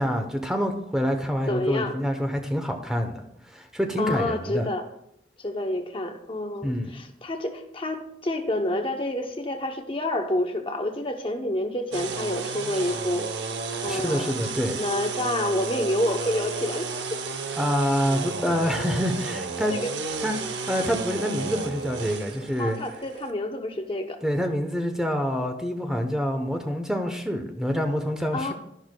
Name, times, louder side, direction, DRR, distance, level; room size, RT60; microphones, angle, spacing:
voice 1, 0.0-4.7 6.6-7.0 13.9-14.8 17.6-19.7 20.2-20.3 20.7-22.8 24.2-28.5, equal, 5° right, 5 dB, 0.7 m, -27 dB
voice 2, 1.5-2.0 4.0-4.8 5.4-13.3 13.8-14.3 14.7-17.2 19.7-19.9 22.6-24.2 28.3-28.5, left 1 dB, 30° left, 4 dB, 0.7 m, -28 dB
sound 1, 11.9-23.3, right 4 dB, 70° right, 0.8 m, -32 dB
12.0 x 11.0 x 2.2 m, 0.78 s
head